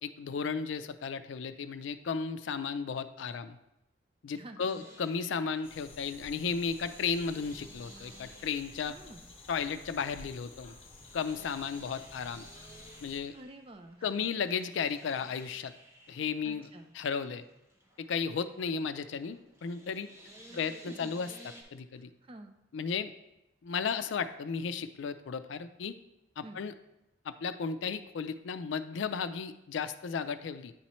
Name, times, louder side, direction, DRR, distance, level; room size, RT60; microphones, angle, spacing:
voice 1, 0.0-3.6 4.2-8.9 9.5-10.8 11.1-12.5 13.0-13.3 14.0-15.7 16.1-16.7 16.9-17.4 18.0-20.1 20.5-21.3 21.7-22.1 22.7-23.1 23.6-26.0 26.4-26.7 27.2-30.7, left 6 dB, 80° left, 12 dB, 0.4 m, -34 dB
voice 2, 4.3-4.8 8.9-9.3 13.3-14.3 16.4-16.9 20.5-20.6 20.9-21.1 21.9-22.6 26.4-26.7, right 1 dB, 30° right, 6 dB, 0.4 m, -50 dB
sound 1, 4.6-21.6, right 1 dB, 15° right, 0.9 m, -56 dB
sound 2, 5.6-13.2, left 2 dB, 30° left, 1.1 m, -52 dB
9.2 x 4.2 x 3.0 m, 0.89 s
head